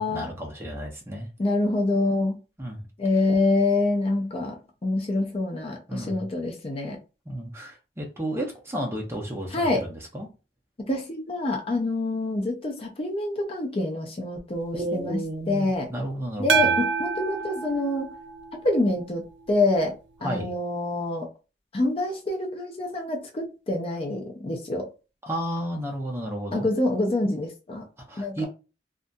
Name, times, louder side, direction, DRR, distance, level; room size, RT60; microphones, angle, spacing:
voice 1, 0.0-1.3 2.6-2.9 5.9-6.2 7.3-10.3 14.7-16.7 20.2-20.5 25.2-26.7 28.0-28.4, right 1 dB, 15° right, 0.6 m, -32 dB
voice 2, 1.4-2.4 3.0-4.6 4.8-7.0 9.5-9.9 10.9-15.2 15.5-15.9 16.4-18.1 18.6-19.9 20.2-21.3 21.7-24.9 26.5-27.9 28.2-28.4, left 2 dB, 35° left, 0.5 m, -26 dB
sound 1, 16.5-18.9, right 6 dB, 85° right, 0.4 m, -26 dB
2.6 x 2.4 x 2.2 m
head